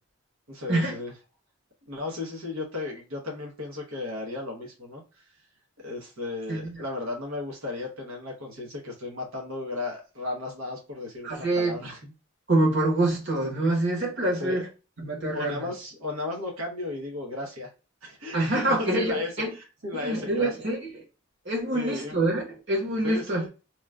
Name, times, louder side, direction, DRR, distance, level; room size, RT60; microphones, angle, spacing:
voice 1, 0.5-1.1 1.9-5.2 5.8-12.1 14.3-14.6 15.3-17.7 18.0-20.5 21.7-22.2 23.0-23.5, left 2 dB, 90° right, -1 dB, 1.1 m, -35 dB
voice 2, 11.2-11.8 12.5-14.6 15.0-15.7 18.3-19.5 19.9-20.9 21.4-23.5, right 2 dB, 55° right, -2 dB, 1.5 m, -26 dB
3.0 x 2.4 x 3.2 m, 0.31 s
head